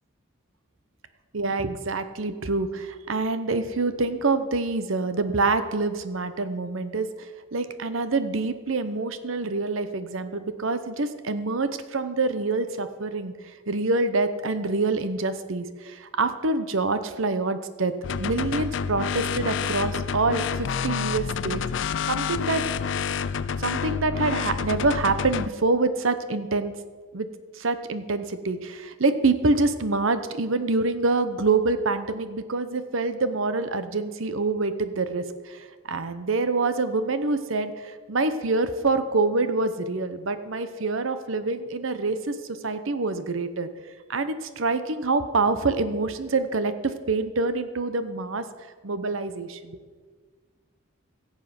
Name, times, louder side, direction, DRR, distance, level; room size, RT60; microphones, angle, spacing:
voice 1, 1.3-7.1 7.5-13.3 13.7-17.9 18.2-21.6 22.1-22.6 23.3-26.7 27.1-27.3 27.5-43.7 44.1-48.4 48.8-49.8, right 3 dB, 70° right, 11 dB, 0.8 m, -26 dB
sound 1, 18.0-25.5, left 6 dB, 60° left, 0.4 m, -28 dB
16.0 x 7.5 x 5.9 m, 1.5 s
head